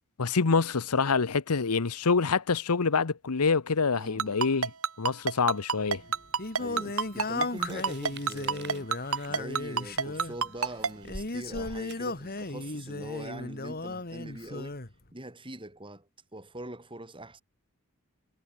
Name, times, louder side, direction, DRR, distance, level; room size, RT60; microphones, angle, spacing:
voice 1, 0.2-4.7 5.0-6.0, left 4 dB, 90° left, 0.9 m, -26 dB
voice 2, 3.9-4.4 6.6-8.9 9.3-14.8 15.1-17.4, right 1 dB, 25° right, 7.5 m, -43 dB
Ringtone, 4.2-10.9, right 5 dB, 70° right, 2.6 m, -27 dB
Singing, 5.9-14.9, left 2 dB, 45° left, 2.2 m, -36 dB
sound 1, 7.5-12.6, right 3 dB, 50° right, 3.7 m, -48 dB
head